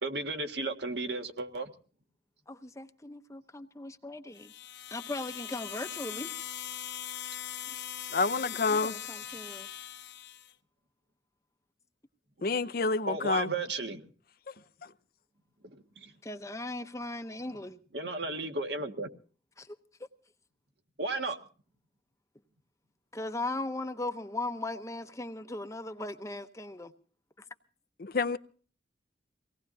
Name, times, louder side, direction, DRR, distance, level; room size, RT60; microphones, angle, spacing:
voice 1, 0.0-1.7 13.1-14.0 16.0-16.1 17.9-19.1 21.0-21.4, right 3 dB, 65° right, 1.8 m, -34 dB
voice 2, 2.5-4.5 4.9-6.3 8.7-9.7 16.2-17.8 19.6-19.8 23.1-26.9, left 2 dB, 15° left, 0.8 m, -38 dB
sound 1, 4.3-10.5, left 11 dB, 70° left, 1.1 m, -41 dB
voice 3, 8.1-8.9 12.4-13.5 28.0-28.4, left 3 dB, 50° left, 0.6 m, -28 dB
24.0 x 18.5 x 2.7 m
head